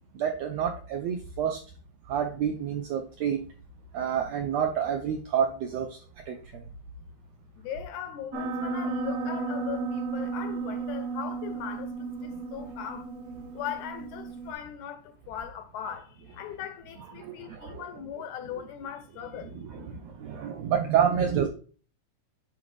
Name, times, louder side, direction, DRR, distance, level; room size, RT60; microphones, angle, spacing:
voice 1, 0.1-1.6 2.1-3.4 3.9-6.0 6.3-6.6 17.2-17.8 19.5-21.5, right 8 dB, 80° right, 1.5 m, -28 dB
voice 2, 7.6-11.9 12.2-13.1 13.5-19.5, left 9 dB, 80° left, 1.8 m, -39 dB
Piano, 8.3-14.5, right 4 dB, 60° right, 1.9 m, -34 dB
9.5 x 3.9 x 3.2 m
omnidirectional pair, 3.8 m